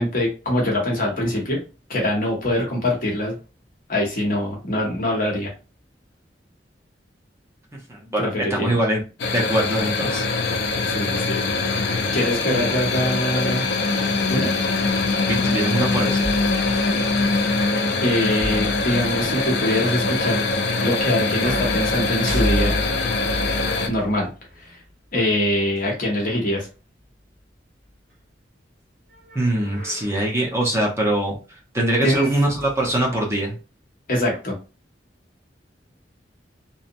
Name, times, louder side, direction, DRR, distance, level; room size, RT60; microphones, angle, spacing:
voice 1, 0.0-1.6 1.9-3.4 3.9-5.5 8.2-8.8 10.8-11.4 12.1-13.7 14.3-14.5 18.0-20.5 20.8-22.8 23.9-24.3 24.6-24.8 25.1-26.7 32.0-32.3 34.1-34.5, left 1 dB, 50° left, -1 dB, 1.0 m, -23 dB
voice 2, 7.9-8.2 8.5-9.0 9.3-10.2 15.3-16.3 29.3-31.3 31.7-33.6, right 1 dB, 15° right, -2 dB, 0.6 m, -22 dB
sound 1, 9.2-23.9, left 3 dB, 65° left, 0.5 m, -23 dB
sound 2, 16.2-17.3 18.4-19.5 21.3-24.9 25.8-25.9 29.1-30.4 31.8-31.9 32.1-33.3, left 1 dB, 50° right, 1.1 m, -32 dB
2.7 x 2.1 x 2.5 m, 0.32 s
head